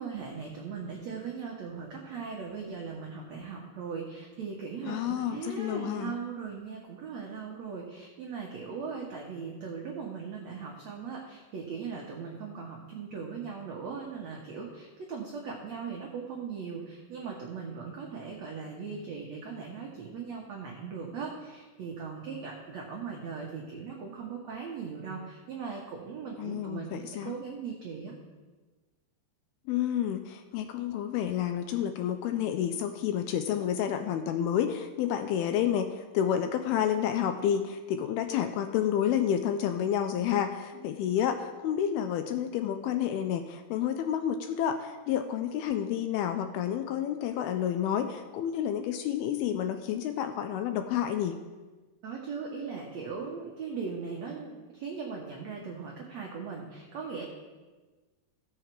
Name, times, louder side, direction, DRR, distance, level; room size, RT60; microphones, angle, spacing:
voice 1, 0.0-28.1 52.0-57.2, right 5 dB, 90° right, -2 dB, 1.5 m, -39 dB
voice 2, 4.9-6.2 26.4-27.3 29.7-51.4, left 9 dB, 85° left, 8 dB, 2.2 m, -30 dB
15.5 x 7.2 x 4.5 m, 1.3 s
omnidirectional pair, 4.9 m